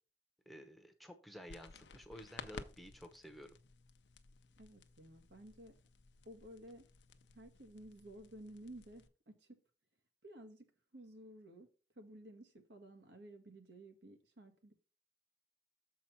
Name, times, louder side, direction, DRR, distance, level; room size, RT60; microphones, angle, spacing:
voice 1, 0.5-3.6, equal, ahead, 5 dB, 0.9 m, -53 dB
sound 1, 1.5-9.1, left 4 dB, 85° left, 0.6 m, -55 dB
voice 2, 4.6-5.7 6.2-6.9 7.3-9.6 10.2-10.7 10.9-11.7 11.9-14.7, right 1 dB, 75° right, 5 dB, 1.4 m, -54 dB
7.0 x 4.6 x 5.6 m, 0.35 s
head